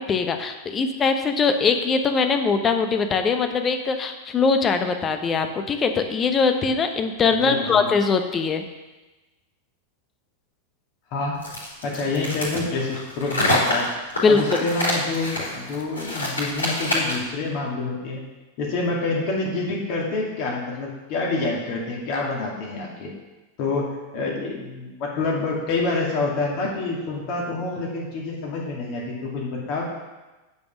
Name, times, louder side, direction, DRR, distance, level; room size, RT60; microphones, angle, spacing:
voice 1, 0.0-8.7 14.2-14.6, left 5 dB, 25° left, 7 dB, 1.0 m, -21 dB
voice 2, 7.4-7.9 11.1-11.4 11.8-13.9 14.3-18.2 18.6-23.1 23.6-29.8, left 3 dB, 40° left, -3 dB, 2.4 m, -27 dB
sound 1, 11.4-17.3, left 1 dB, 75° left, 3.5 m, -26 dB
9.5 x 5.4 x 7.2 m, 1.1 s
figure-of-eight pair, 90°, 0 cm